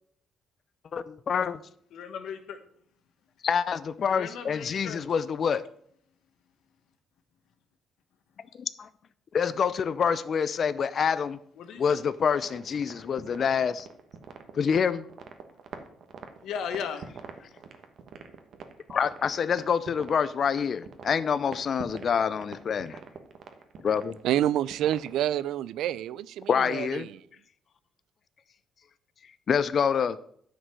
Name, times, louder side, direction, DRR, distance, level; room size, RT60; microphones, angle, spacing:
voice 1, 0.9-1.6 3.4-5.6 8.6-8.9 9.3-11.4 11.8-13.9 14.5-15.1 18.9-23.0 23.8-24.2 26.5-27.1 29.5-30.2, left 7 dB, 50° left, 0.5 m, -26 dB
voice 2, 1.9-2.6 4.1-5.0 11.6-12.0 16.4-17.1 17.4-17.5, left 7 dB, 80° left, 1.3 m, -36 dB
sound 1, 12.4-25.2, right 6 dB, 65° right, 1.3 m, -45 dB
voice 3, 24.2-27.1, right 12 dB, 85° right, 0.4 m, -28 dB
9.9 x 5.2 x 7.5 m
cardioid pair, 90°, 0 cm